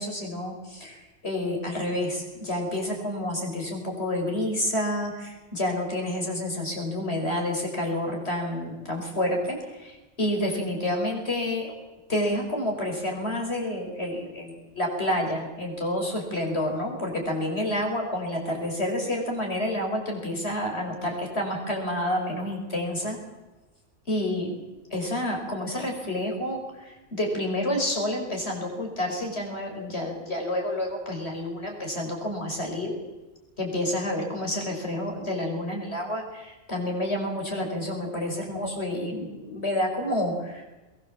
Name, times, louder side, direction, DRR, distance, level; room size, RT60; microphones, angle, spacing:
voice 1, 0.0-11.7 12.1-23.2 24.1-24.6 24.9-32.9 33.6-40.6, left 1 dB, 60° left, 1 dB, 5.9 m, -29 dB
22.0 x 20.0 x 7.7 m, 1.1 s
omnidirectional pair, 1.3 m